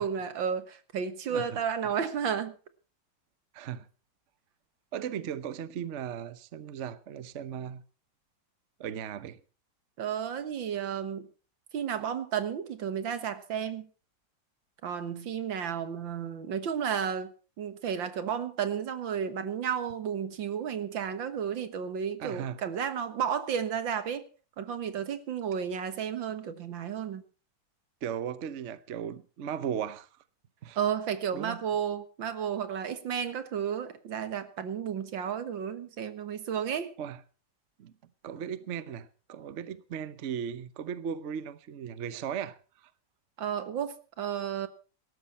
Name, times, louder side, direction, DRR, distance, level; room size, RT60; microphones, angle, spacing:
voice 1, 0.0-2.5 10.0-11.3 11.7-13.9 14.8-24.3 24.6-27.2 30.8-36.9 43.4-44.7, right 8 dB, 80° right, 2.1 m, -32 dB
voice 2, 3.5-3.9 4.9-7.8 8.8-9.4 22.2-22.6 28.0-30.1 30.6-30.8 31.3-31.6 37.0-37.2 37.8-37.9 38.2-42.9, right 8 dB, 50° right, 1.0 m, -37 dB
18.0 x 13.0 x 4.3 m
omnidirectional pair, 2.1 m